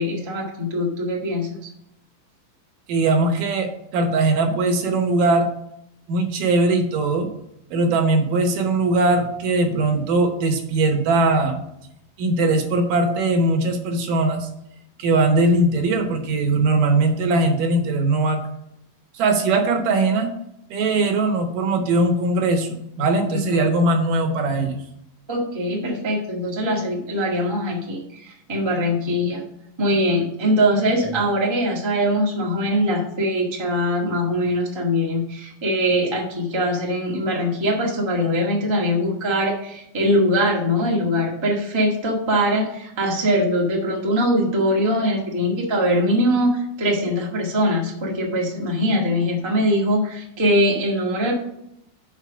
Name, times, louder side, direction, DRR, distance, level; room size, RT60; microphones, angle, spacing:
voice 1, 0.0-1.7 23.3-23.7 25.3-29.4 29.8-51.3, equal, 25° right, -3 dB, 0.5 m, -22 dB
voice 2, 2.9-5.5 6.1-7.3 7.7-11.6 12.2-14.5 15.0-18.4 19.1-20.3 20.7-24.8, right 2 dB, 75° right, 5 dB, 2.6 m, -20 dB
6.2 x 5.3 x 7.0 m, 0.78 s
omnidirectional pair, 4.0 m